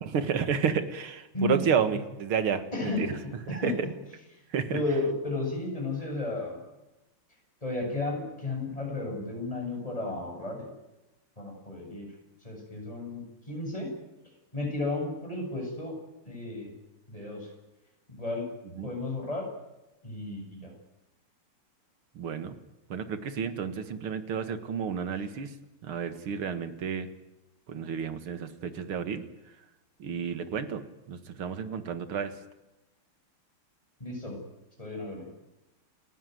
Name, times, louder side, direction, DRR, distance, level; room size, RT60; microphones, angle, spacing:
voice 1, 0.0-3.2 3.6-3.7 4.5-4.8 18.8-18.9 22.2-22.6 22.9-25.5 25.8-27.1 27.7-29.2 30.0-30.8 31.1-32.3, right 7 dB, 75° right, 10 dB, 2.5 m, -31 dB
voice 2, 2.7-3.7 4.7-6.6 7.6-10.7 11.4-12.1 12.4-13.9 14.5-15.9 16.2-16.7 17.1-17.5 18.1-18.5 18.8-19.5 20.0-20.7 34.0-34.4 34.8-35.4, left 2 dB, 15° left, 1 dB, 7.7 m, -33 dB
29.5 x 15.0 x 9.4 m, 0.99 s
omnidirectional pair, 2.4 m